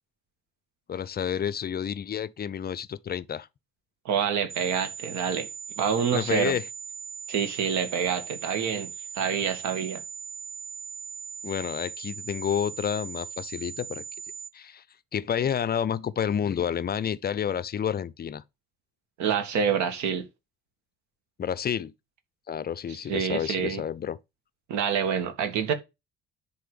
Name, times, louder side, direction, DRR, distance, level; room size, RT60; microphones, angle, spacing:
voice 1, 0.9-3.5 6.1-6.7 11.4-14.0 14.5-14.8 15.1-18.4 21.4-21.9 22.5-24.2, left 8 dB, 25° left, 0.7 m, -29 dB
voice 2, 4.1-5.5 5.8-6.5 7.3-10.0 19.2-20.3 23.1-23.8 24.7-25.7, right 7 dB, 50° right, 1.9 m, -27 dB
sound 1, 4.5-14.5, right 6 dB, 15° right, 0.9 m, -40 dB
10.0 x 3.9 x 6.7 m
figure-of-eight pair, 50°, 35 cm